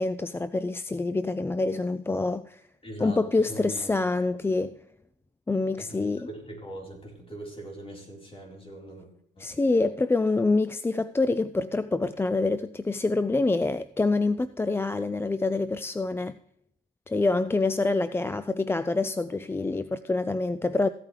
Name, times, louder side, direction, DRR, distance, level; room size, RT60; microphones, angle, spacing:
voice 1, 0.0-2.6 3.0-4.8 5.5-6.3 9.4-16.4 17.1-20.9, left 3 dB, 10° left, 0.3 m, -26 dB
voice 2, 2.8-4.0 5.7-9.1 9.4-9.5, right 1 dB, 30° left, 4.0 m, -41 dB
15.0 x 8.7 x 3.2 m
cardioid pair, 90°, 20 cm